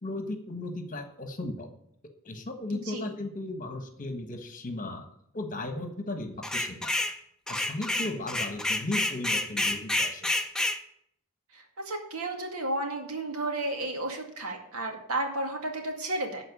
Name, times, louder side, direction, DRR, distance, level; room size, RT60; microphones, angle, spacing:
voice 1, 0.0-1.7 2.2-5.1 5.3-6.9 7.5-10.3, left 2 dB, 35° left, 6 dB, 1.3 m, -36 dB
voice 2, 2.7-3.1 11.5-16.5, right 2 dB, 85° right, 3 dB, 2.2 m, -33 dB
sound 1, 6.4-7.2 7.5-10.8, left 1 dB, 5° left, 0.6 m, -29 dB
12.0 x 4.5 x 8.4 m, 0.70 s
head